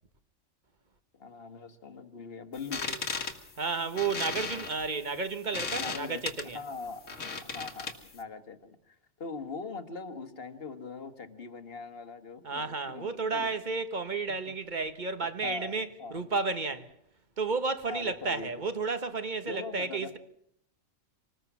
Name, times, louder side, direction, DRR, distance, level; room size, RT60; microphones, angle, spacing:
voice 1, 1.1-2.9 5.7-6.2 6.5-7.0 7.4-13.5 14.4-14.5 15.4-16.2 17.9-18.6 19.5-20.1, left 4 dB, 50° left, 1.6 m, -41 dB
sound 1, 2.6-8.2, left 4 dB, 70° left, 2.1 m, -37 dB
voice 2, 3.6-6.6 12.4-16.9 17.4-20.2, right 4 dB, 35° right, 1.4 m, -32 dB
26.0 x 20.0 x 6.0 m
omnidirectional pair, 1.3 m